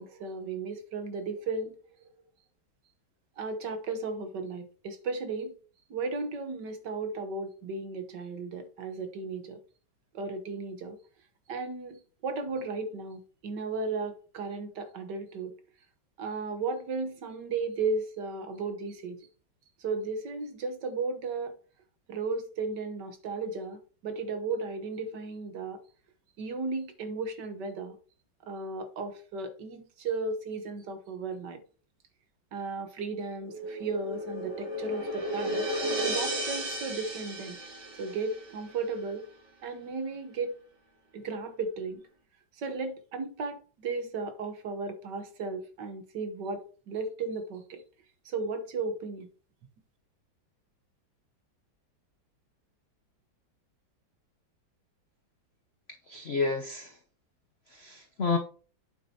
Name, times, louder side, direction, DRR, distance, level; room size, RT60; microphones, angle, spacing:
voice 1, 0.0-1.7 3.4-5.5 5.9-9.6 10.1-11.0 11.5-15.5 16.2-19.2 19.8-21.5 22.1-25.8 26.4-28.0 28.4-31.6 32.5-35.7 36.0-37.6 38.0-39.3 39.6-40.5 41.1-42.0 42.6-47.8 48.2-49.3, right 4 dB, 65° right, 1.6 m, -35 dB
sound 1, 33.4-38.6, right 1 dB, 80° right, 4.2 m, -34 dB
voice 2, 56.1-56.9 57.7-58.4, left 4 dB, 60° left, 0.6 m, -30 dB
8.5 x 7.2 x 2.8 m
omnidirectional pair, 2.1 m